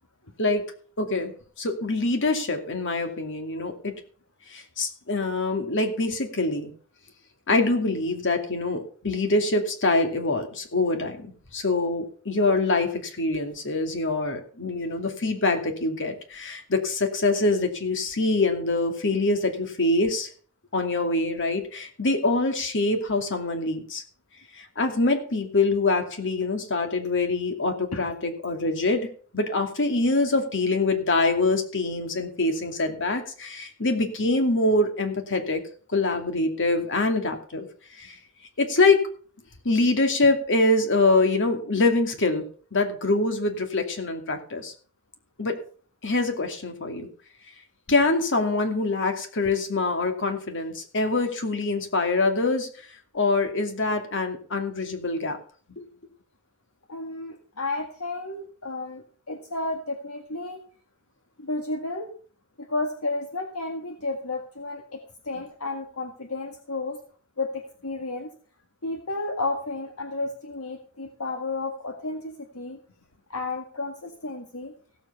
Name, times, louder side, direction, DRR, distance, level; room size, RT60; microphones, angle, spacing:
voice 1, 1.0-3.9 4.5-6.7 7.5-20.3 20.7-24.0 24.5-35.6 35.9-37.7 38.0-38.2 38.6-39.1 39.6-42.4 42.7-44.7 45.4-45.6 46.0-47.1 47.9-52.9 53.1-55.4 55.8-55.9, left 2 dB, 60° left, 5 dB, 2.5 m, -24 dB
voice 2, 56.9-60.6 61.4-62.1 62.6-65.0 65.2-67.0 67.4-68.3 68.8-72.8 73.3-74.7, left 2 dB, 75° left, 4 dB, 1.8 m, -32 dB
16.0 x 7.6 x 5.6 m, 0.43 s
head